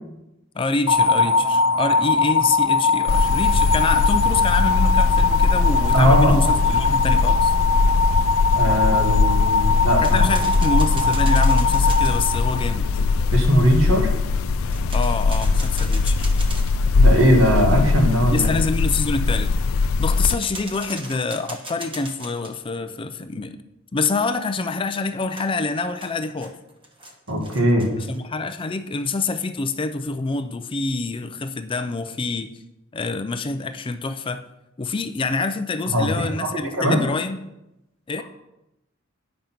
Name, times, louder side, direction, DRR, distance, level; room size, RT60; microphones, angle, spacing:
voice 1, 0.5-7.5 10.0-12.9 14.9-16.3 18.3-19.6 20.0-23.6 23.9-26.6 28.0-32.5 32.9-34.4 34.8-37.4 38.1-38.2, left 3 dB, 25° left, 9 dB, 0.4 m, -26 dB
sound 1, 0.9-13.0, left 4 dB, 65° left, 1.0 m, -21 dB
sound 2, 3.1-20.4, left 3 dB, 85° left, 0.4 m, -20 dB
voice 2, 5.9-6.4 8.5-10.3 13.3-14.1 16.9-18.5 27.3-27.9 35.9-37.0, equal, 75° right, 0 dB, 2.1 m, -19 dB
sound 3, 9.9-12.2 14.6-16.9 20.0-22.5 25.4-28.2, right 1 dB, 25° right, 1.2 m, -38 dB
9.3 x 5.2 x 5.8 m, 0.92 s
head